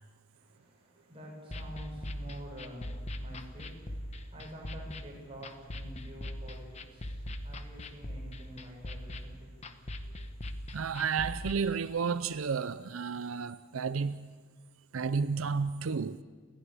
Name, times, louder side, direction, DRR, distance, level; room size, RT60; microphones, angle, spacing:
voice 1, 0.3-10.3, equal, 25° right, 7.3 m, -48 dB
sound 1, 1.5-11.5, left 1 dB, 30° left, 1.0 m, -41 dB
voice 2, 10.7-14.4 14.9-16.2, right 5 dB, 90° right, 0.6 m, -32 dB
29.5 x 11.5 x 8.8 m
head